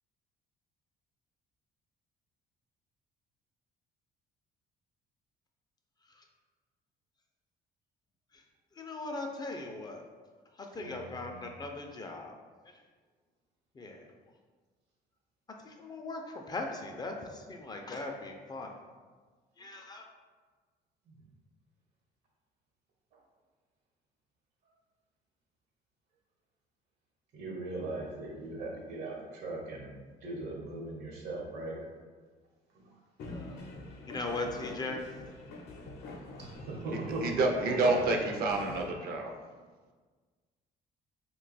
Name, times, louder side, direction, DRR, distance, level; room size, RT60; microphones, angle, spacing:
voice 1, 8.8-10.0 10.6-12.3 13.8-14.1 15.6-18.7 19.6-20.0 33.3-33.6 34.1-35.0, left 2 dB, 25° left, 2 dB, 0.3 m, -39 dB
voice 2, 10.8-11.5 21.0-21.1 27.3-29.9 30.2-31.8 32.7-32.9 36.4-37.3 37.6-38.0, right 2 dB, 80° right, -2 dB, 0.9 m, -39 dB
sound 1, 33.2-38.9, left 2 dB, 75° left, 0.6 m, -46 dB
voice 3, 36.6-39.3, right 2 dB, 65° right, 2 dB, 0.5 m, -29 dB
2.5 x 2.2 x 4.0 m, 1.4 s
cardioid pair, 110°, 17 cm